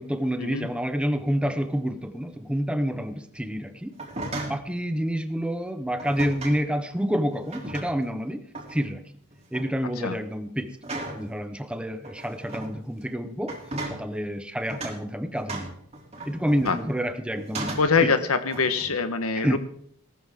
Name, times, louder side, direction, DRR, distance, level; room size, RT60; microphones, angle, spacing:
voice 1, 0.0-3.9 4.4-8.4 8.7-9.0 9.5-10.8 11.1-13.6 13.8-15.7 16.3-18.1 18.9-19.0 19.4-19.6, equal, 5° right, 9 dB, 0.9 m, -28 dB
sound 1, 3.9-4.7 6.0-6.6 7.3-8.1 8.5-8.9 9.3-9.7 10.8-11.3 12.0-12.7 13.4-14.0 14.7-15.0 15.5-17.0 17.4-18.0 18.5-18.9, right 2 dB, 30° right, 3.1 m, -35 dB
voice 2, 17.7-19.6, left 4 dB, 85° left, 10 dB, 1.3 m, -24 dB
18.0 x 13.0 x 3.7 m, 0.65 s
head